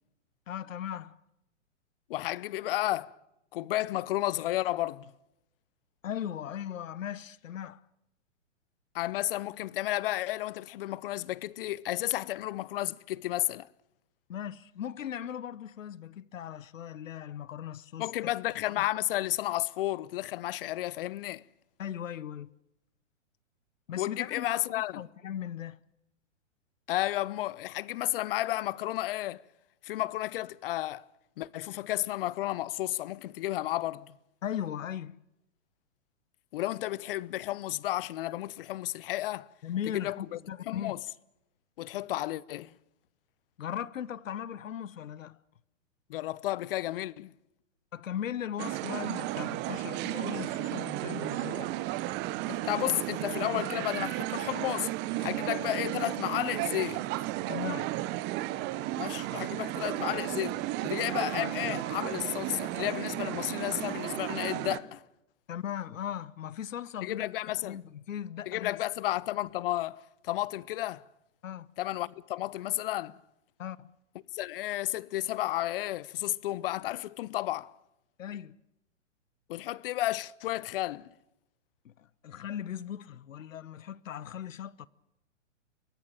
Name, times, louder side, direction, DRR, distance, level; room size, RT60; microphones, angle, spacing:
voice 1, 0.5-1.2 6.0-7.8 14.3-18.1 18.8-18.9 21.8-22.5 23.9-24.6 25.0-25.8 34.4-35.2 39.6-41.0 43.6-45.4 47.9-51.7 57.5-58.0 65.5-67.3 67.6-68.7 71.4-71.7 73.6-73.9 78.2-78.6 81.8-84.9, left 10 dB, 80° left, 0.9 m, -38 dB
voice 2, 2.1-3.2 3.5-5.1 8.9-13.7 18.0-21.4 24.0-25.0 26.9-29.4 29.8-31.1 31.4-34.1 36.5-39.5 39.9-41.0 41.8-42.7 46.1-47.3 52.5-54.9 55.2-57.0 59.0-65.0 67.0-67.8 68.5-71.0 71.8-73.2 74.3-77.7 79.5-81.1, left 15 dB, 45° left, 0.8 m, -32 dB
sound 1, 48.6-64.8, right 16 dB, 25° right, 1.0 m, -34 dB
23.0 x 17.5 x 8.8 m
hypercardioid pair, 130°, 39 cm